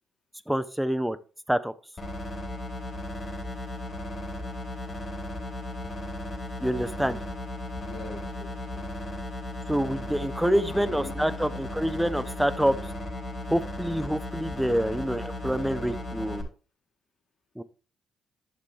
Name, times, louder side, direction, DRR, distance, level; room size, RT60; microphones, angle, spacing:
voice 1, 0.5-1.2 1.5-1.7 6.6-7.2 9.7-12.8 13.5-16.5 17.6-17.7, equal, 5° right, 14 dB, 0.7 m, -26 dB
sound 1, 2.0-16.4, left 1 dB, 30° left, 4.2 m, -36 dB
voice 2, 7.8-8.9 10.4-11.4, left 4 dB, 50° left, 1 dB, 2.9 m, -42 dB
11.0 x 6.6 x 3.3 m, 0.36 s
cardioid pair, 90°, 0 cm